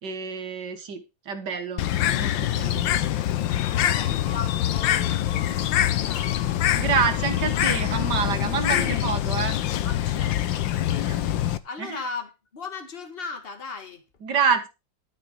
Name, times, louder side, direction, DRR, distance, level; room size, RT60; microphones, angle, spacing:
voice 1, 0.0-2.8 6.7-9.6 11.1-11.2 11.8-12.0 14.2-14.7, right 6 dB, 60° right, 2.3 m, -27 dB
Bird, 1.8-11.6, left 12 dB, 75° left, 1.5 m, -24 dB
voice 2, 1.8-2.6 3.5-6.7 8.7-9.0 9.8-14.0, left 4 dB, 30° left, 1.9 m, -39 dB
12.5 x 6.3 x 5.6 m
omnidirectional pair, 2.1 m